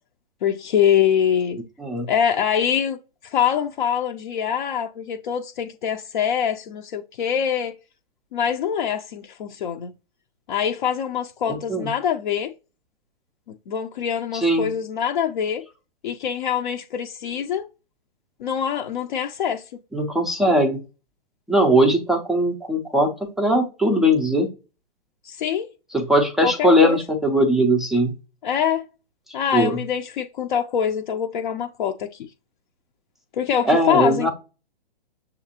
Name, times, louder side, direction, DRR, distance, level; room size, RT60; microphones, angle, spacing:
voice 1, 0.4-1.6 2.1-3.0 3.2-7.8 8.3-9.9 10.5-12.5 13.5-15.6 16.0-17.7 18.4-19.7 25.2-25.7 26.4-27.0 28.4-28.9 29.3-32.3 33.3-34.3, left 8 dB, 55° left, 0.5 m, -24 dB
voice 2, 11.5-11.9 14.3-14.7 19.9-20.8 21.5-23.1 23.4-24.5 25.9-28.1 29.5-29.8 33.7-34.3, equal, ahead, 0.3 m, -19 dB
6.4 x 2.4 x 2.8 m
figure-of-eight pair, 120°, 30 cm